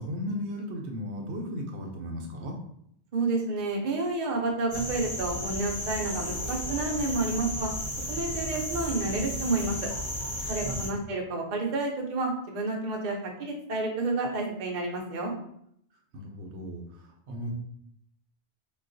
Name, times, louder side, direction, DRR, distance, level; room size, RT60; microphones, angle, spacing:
voice 1, 0.0-2.6 10.6-11.0 16.1-17.5, left 1 dB, 80° right, 1 dB, 0.9 m, -36 dB
voice 2, 3.1-7.7 8.1-9.9 10.5-15.3, right 3 dB, 50° right, 0 dB, 0.7 m, -30 dB
sound 1, 4.7-10.9, left 1 dB, 25° left, 0.9 m, -34 dB
3.8 x 2.3 x 2.5 m, 0.70 s
omnidirectional pair, 1.2 m